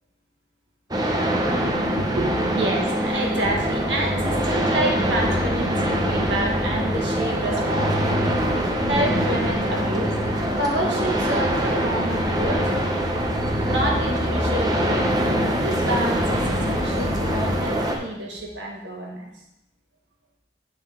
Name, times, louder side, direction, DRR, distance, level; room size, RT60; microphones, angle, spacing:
sound 1, 0.9-18.0, right 1 dB, 20° right, 0.7 m, -24 dB
voice 1, 2.0-10.2 10.6-12.7 13.6-15.1 15.5-19.3, right 1 dB, 90° right, -1 dB, 1.8 m, -28 dB
sound 2, 3.4-17.6, left 1 dB, 90° left, 1.4 m, -30 dB
7.9 x 6.5 x 3.7 m, 0.85 s
head